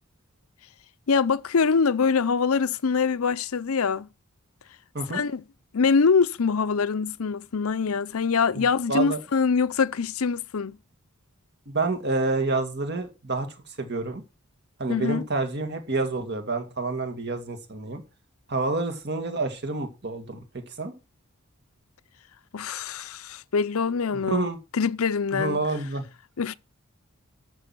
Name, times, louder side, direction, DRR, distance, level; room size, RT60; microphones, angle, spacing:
voice 1, 1.1-4.1 5.1-5.4 5.7-10.8 14.9-15.2 22.5-25.6 26.4-26.5, left 5 dB, 75° left, 0.6 m, -24 dB
voice 2, 8.6-9.2 11.7-13.5 13.8-14.2 14.8-18.0 18.5-20.9 24.3-24.6 25.3-26.0, right 3 dB, 50° right, 2.4 m, -28 dB
13.0 x 6.1 x 6.2 m
head